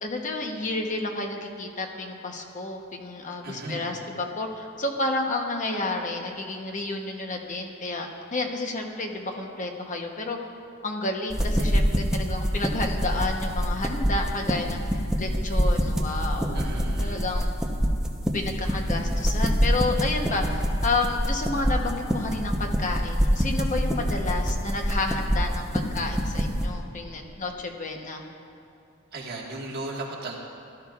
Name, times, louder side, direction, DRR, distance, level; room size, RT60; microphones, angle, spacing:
voice 1, 0.0-10.4 10.8-14.8 15.2-16.6 17.0-17.5 18.3-28.2, left 2 dB, 40° left, 2 dB, 0.9 m, -30 dB
voice 2, 3.4-4.0 16.5-17.2 29.1-30.4, right 2 dB, 50° right, -3 dB, 1.7 m, -36 dB
sound 1, 11.3-26.7, equal, 5° right, 0.8 m, -26 dB
17.0 x 12.5 x 2.4 m, 2.6 s
head